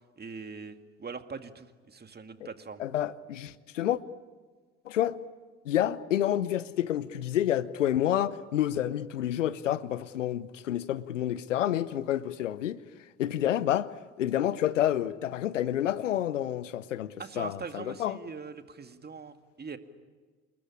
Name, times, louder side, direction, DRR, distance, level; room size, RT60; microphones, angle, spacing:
voice 1, 0.2-2.8 17.2-19.8, right 5 dB, 25° right, 2.2 m, -42 dB
voice 2, 2.8-4.0 4.9-5.2 5.6-12.8 13.2-13.9 14.2-18.2, left 11 dB, 85° left, 0.9 m, -29 dB
28.0 x 21.0 x 10.0 m
hypercardioid pair, 60°, 37 cm